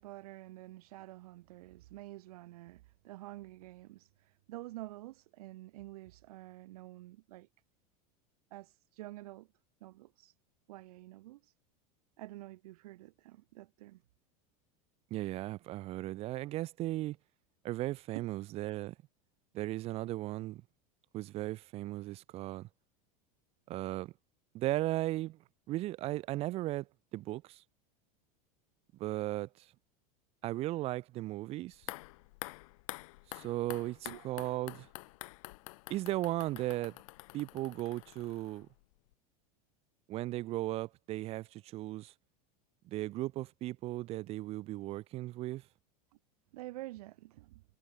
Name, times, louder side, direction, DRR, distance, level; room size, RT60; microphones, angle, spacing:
voice 1, 0.0-7.5 8.5-9.5 9.8-10.3 10.7-11.5 12.2-14.0 18.2-18.3 34.0-34.2 46.5-47.6, right 17 dB, 90° right, 1.0 m, -48 dB
voice 2, 15.1-17.2 17.6-18.9 19.5-20.6 21.1-22.7 23.7-24.1 24.5-25.4 25.7-26.9 27.1-27.6 29.0-29.7 30.4-31.9 33.3-34.9 35.9-37.0 37.3-38.7 40.1-42.1 42.8-45.6, right 16 dB, 30° right, 1.1 m, -36 dB
sound 1, 31.7-38.8 39.1-39.2, left 22 dB, 65° left, 3.4 m, -48 dB
supercardioid pair, 165°, 19 cm